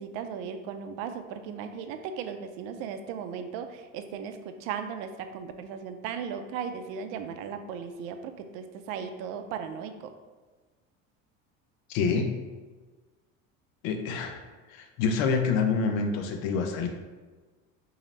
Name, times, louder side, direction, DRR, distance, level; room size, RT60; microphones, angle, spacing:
voice 1, 0.0-10.1, right 7 dB, 70° right, 8 dB, 0.5 m, -37 dB
voice 2, 11.9-12.3 13.8-14.4 14.7-16.9, left 5 dB, 75° left, 5 dB, 0.7 m, -27 dB
3.1 x 2.8 x 3.9 m, 1.3 s
supercardioid pair, 90°, 40 cm